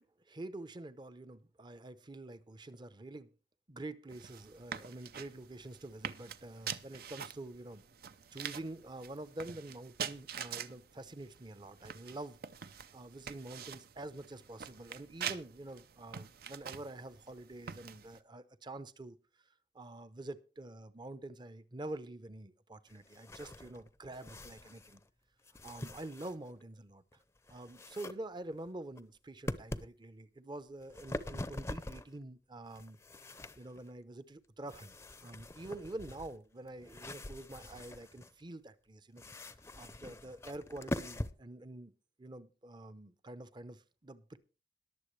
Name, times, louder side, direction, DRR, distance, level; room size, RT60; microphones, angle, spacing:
voice 1, 0.0-3.3 3.7-7.8 8.3-12.4 12.6-19.2 19.7-25.0 25.6-27.0 27.5-39.2 39.8-41.9 42.2-44.4, right 2 dB, 25° right, 14 dB, 0.7 m, -47 dB
sound 1, 4.1-18.2, right 8 dB, 60° right, 0.6 m, -46 dB
sound 2, 22.9-25.1 25.4-26.6 27.1-28.1 28.5-29.0 29.5-29.9 30.7-32.2 32.7-33.9 34.6-38.3 39.2-41.3, left 1 dB, 15° left, 0.6 m, -44 dB
21.5 x 7.4 x 3.2 m, 0.32 s
head